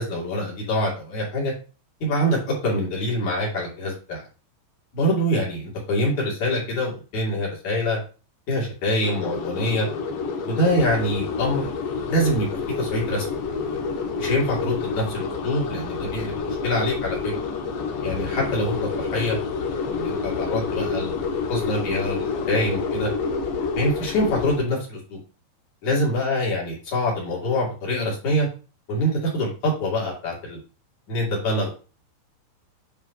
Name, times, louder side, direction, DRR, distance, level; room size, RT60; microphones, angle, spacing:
voice 1, 0.0-1.5 2.0-4.2 4.9-8.0 8.5-9.9 10.4-11.7 12.1-13.8 14.2-17.2 18.0-19.4 19.8-21.2 21.5-23.1 23.7-25.2 25.8-28.5 28.9-29.5 29.8-30.6 31.1-31.7, left 1 dB, 45° left, -4 dB, 3.6 m, -25 dB
sound 1, 9.0-24.6, left 4 dB, 75° left, 3.3 m, -28 dB
10.0 x 4.8 x 2.9 m, 0.35 s
omnidirectional pair, 5.3 m